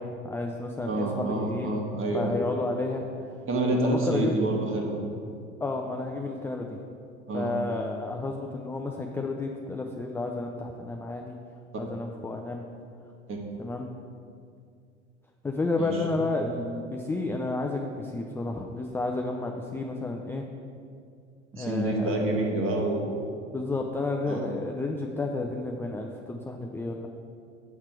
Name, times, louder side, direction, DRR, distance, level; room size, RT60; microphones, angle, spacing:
voice 1, 0.0-1.8 2.1-3.0 3.7-4.4 5.6-6.8 7.3-11.4 11.8-12.6 13.6-13.9 15.4-20.4 21.6-22.4 23.5-27.1, left 2 dB, 5° left, 1 dB, 0.4 m, -31 dB
voice 2, 0.9-2.3 3.5-5.1 7.3-7.5 13.3-13.4 15.8-16.0 21.5-23.3 24.3-24.4, right 2 dB, 35° right, 0 dB, 1.5 m, -27 dB
8.3 x 5.7 x 4.6 m, 2.3 s
figure-of-eight pair, 70°, 36 cm